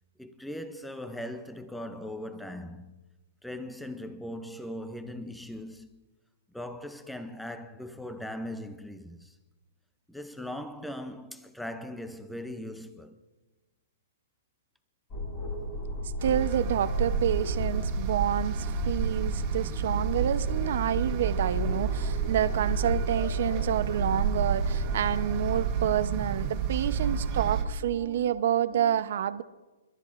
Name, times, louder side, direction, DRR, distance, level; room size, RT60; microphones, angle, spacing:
voice 1, 0.2-3.0 3.4-6.1 6.5-9.4 10.1-13.2 26.7-28.3 28.7-29.0, left 1 dB, ahead, 0.4 m, -40 dB
sound 1, 15.1-25.6, left 1 dB, 20° left, 2.2 m, -34 dB
sound 2, 16.2-27.6, right 7 dB, 25° right, 1.6 m, -31 dB
voice 2, 16.2-29.4, right 10 dB, 55° right, 0.7 m, -28 dB
28.5 x 12.5 x 2.5 m
hypercardioid pair, 165°, 0 cm